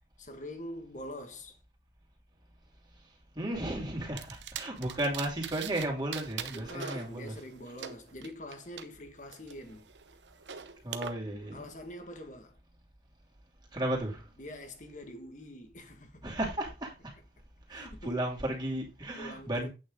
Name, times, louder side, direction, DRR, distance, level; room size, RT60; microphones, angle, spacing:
voice 1, 0.2-1.6 6.5-9.9 11.3-12.6 14.4-16.3 17.7-18.2 19.2-19.7, left 1 dB, 45° left, 1.7 m, -45 dB
voice 2, 3.3-7.4 10.8-11.7 13.7-14.2 16.2-17.1 17.7-19.7, right 1 dB, 25° right, 2.8 m, -34 dB
sound 1, 4.2-5.9 6.1-8.8 9.3-11.1, right 8 dB, 90° right, 0.8 m, -42 dB
8.8 x 6.3 x 3.8 m
head